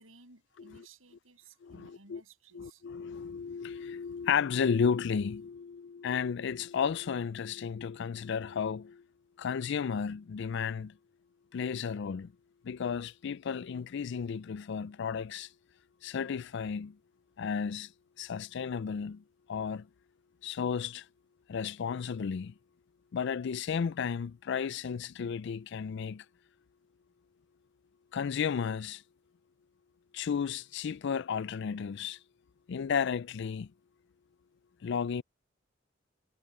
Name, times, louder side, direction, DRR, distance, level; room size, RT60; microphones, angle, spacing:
voice 1, 0.0-2.8, right 3 dB, 85° right, 7.4 m, -58 dB
voice 2, 1.6-2.2 2.5-9.0 9.4-11.0 11.5-12.3 12.6-15.5 16.0-17.0 17.4-17.9 18.2-19.2 19.5-19.9 20.4-21.1 21.5-22.5 23.1-26.2 28.1-29.0 30.1-32.2 32.7-33.7 34.8-35.2, left 6 dB, 60° left, 0.4 m, -33 dB
head